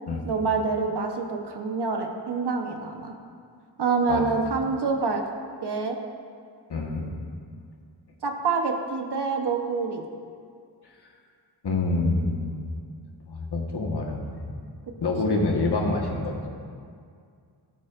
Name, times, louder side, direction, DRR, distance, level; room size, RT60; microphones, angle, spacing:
voice 1, 0.2-3.1 3.8-5.3 5.6-6.0 8.2-10.1 15.2-15.5, right 4 dB, 65° right, 3 dB, 1.0 m, -26 dB
voice 2, 6.7-7.1 11.6-12.5 13.3-14.5 15.0-16.5, left 3 dB, 60° left, 0 dB, 1.4 m, -26 dB
13.0 x 7.3 x 2.5 m, 2.2 s
cardioid pair, 50°, 44 cm